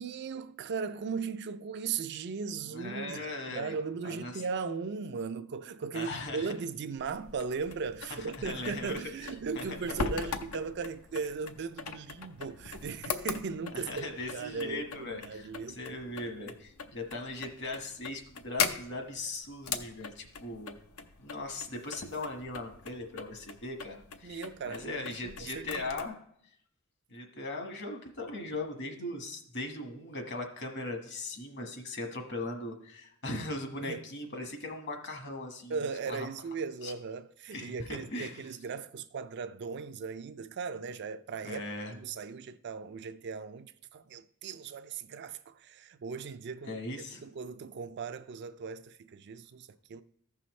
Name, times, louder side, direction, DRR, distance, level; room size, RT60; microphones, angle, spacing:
voice 1, 0.0-15.8 24.2-26.0 33.8-34.0 35.7-41.6 41.9-50.0, right 5 dB, 50° right, 0.4 m, -38 dB
voice 2, 2.7-3.7 4.0-4.4 5.9-6.5 8.1-9.3 9.5-9.7 13.7-20.7 21.2-26.2 27.1-35.8 36.1-36.3 36.8-36.9 37.5-38.4 41.4-41.9 46.7-47.2, left 2 dB, 55° left, 1.4 m, -39 dB
sound 1, 7.0-26.1, left 5 dB, 80° left, 0.7 m, -41 dB
14.5 x 5.6 x 3.1 m
head